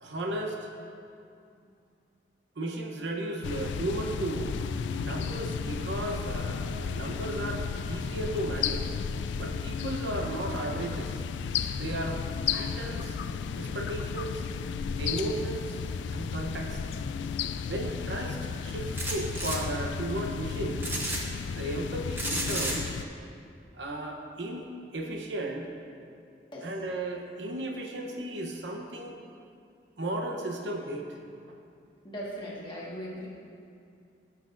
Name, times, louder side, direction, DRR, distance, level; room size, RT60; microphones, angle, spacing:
voice 1, 0.0-0.6 2.6-4.6 5.0-8.9 9.4-11.2 11.8-12.2 12.5-13.2 13.6-14.4 15.0-15.8 16.1-16.8 17.6-18.4 18.6-21.0 21.5-22.9 23.7-25.7 26.6-29.2 30.0-31.1, right 1 dB, 80° right, 1 dB, 0.9 m, -35 dB
sound 1, 3.4-23.0, left 6 dB, 75° left, 0.3 m, -33 dB
sound 2, 19.0-19.6 20.8-21.2 22.2-22.8, right 1 dB, 10° right, 0.8 m, -31 dB
voice 2, 32.0-33.3, equal, 25° left, -6 dB, 1.6 m, -39 dB
16.0 x 6.0 x 2.6 m, 2.4 s
head